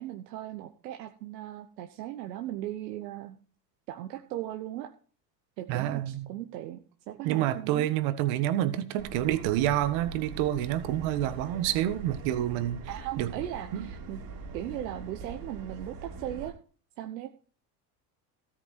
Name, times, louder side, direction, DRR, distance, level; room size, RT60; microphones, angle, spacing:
voice 1, 0.0-3.4 3.9-4.9 5.6-7.9 12.9-14.2 14.5-16.5 17.0-17.3, right 13 dB, 85° right, 1.1 m, -38 dB
voice 2, 5.7-6.3 7.2-12.8 13.2-13.3 13.7-13.9, right 12 dB, 70° right, 1.6 m, -28 dB
Subway metro underground, 9.0-16.5, right 3 dB, 45° right, 3.0 m, -42 dB
13.5 x 8.9 x 4.4 m
hypercardioid pair, 80°, 49 cm